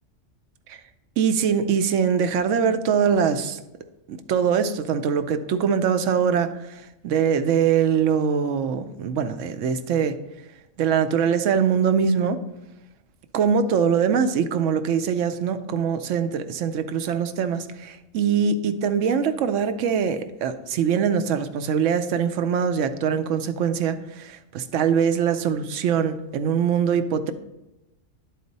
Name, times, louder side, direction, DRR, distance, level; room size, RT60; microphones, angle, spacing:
voice 1, 1.2-3.6 4.1-10.2 10.8-12.4 13.3-27.3, right 7 dB, 75° right, 0.9 m, -23 dB
10.5 x 4.2 x 4.0 m
omnidirectional pair, 1.3 m